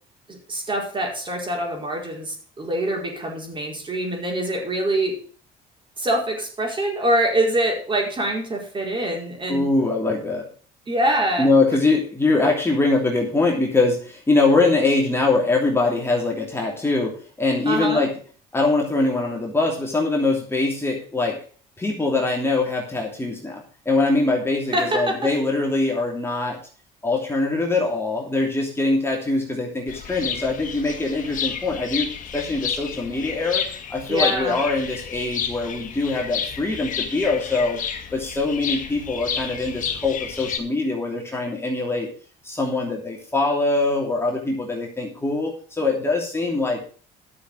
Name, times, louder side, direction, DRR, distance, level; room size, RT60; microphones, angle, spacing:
voice 1, 0.3-5.2 6.0-9.6 10.9-11.5 17.7-18.0 24.7-25.2 34.1-34.6, right 1 dB, 30° right, 1 dB, 4.7 m, -24 dB
voice 2, 9.5-10.5 11.4-18.1 18.5-21.4 21.8-26.6 27.0-37.8 38.1-42.1 42.4-46.9, left 3 dB, 15° left, 0 dB, 2.9 m, -23 dB
sound 1, 29.9-40.6, left 7 dB, 50° left, 2.0 m, -31 dB
11.5 x 6.8 x 6.4 m, 0.42 s
cardioid pair, 110°, 17 cm